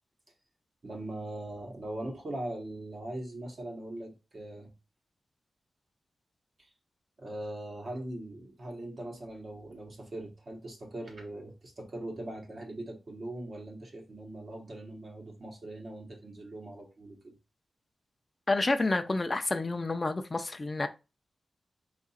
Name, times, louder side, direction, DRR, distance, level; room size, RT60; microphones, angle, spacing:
voice 1, 0.8-4.7 6.6-6.7 7.2-17.3, right 1 dB, 40° right, 1.0 m, -41 dB
voice 2, 18.5-20.9, left 2 dB, 25° left, 0.4 m, -29 dB
4.7 x 2.4 x 4.0 m
wide cardioid pair, 170°, 0 cm